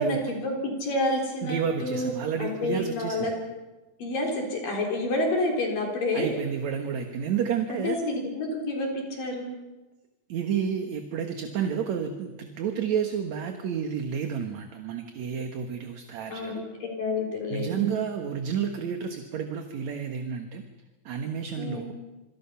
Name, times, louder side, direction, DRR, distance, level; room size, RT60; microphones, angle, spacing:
voice 1, 0.0-2.1 2.4-3.3 4.0-6.4 7.7-9.6 16.3-17.7 21.6-21.9, left 2 dB, 65° left, 0 dB, 5.6 m, -29 dB
voice 2, 1.4-3.3 6.1-8.0 10.3-16.6 17.5-20.6 21.0-21.9, right 7 dB, 60° right, 5 dB, 2.4 m, -30 dB
27.5 x 25.0 x 5.8 m, 1.1 s
omnidirectional pair, 4.3 m